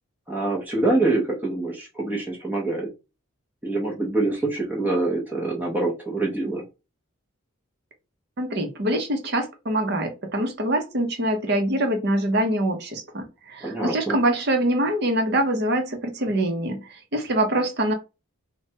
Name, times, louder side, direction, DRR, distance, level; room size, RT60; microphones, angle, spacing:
voice 1, 0.3-2.9 3.6-6.6 13.6-14.2, right 2 dB, 10° right, -3 dB, 0.6 m, -25 dB
voice 2, 8.4-17.9, right 1 dB, 50° right, 5 dB, 0.7 m, -24 dB
3.2 x 2.1 x 2.8 m, 0.28 s
head